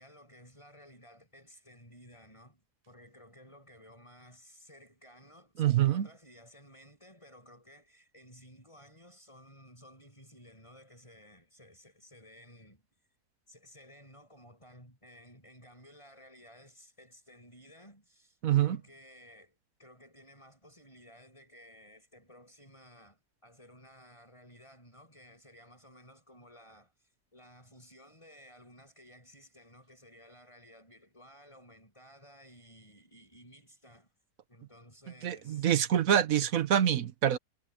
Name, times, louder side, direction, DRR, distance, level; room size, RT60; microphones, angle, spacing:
voice 1, 0.0-12.8 13.5-26.9 27.3-34.1 34.5-35.7 36.2-36.3, equal, 20° left, 8.1 m, -56 dB
voice 2, 5.6-6.1 18.4-18.8 35.2-37.4, right 10 dB, 60° right, 1.2 m, -26 dB
omnidirectional pair, 1.7 m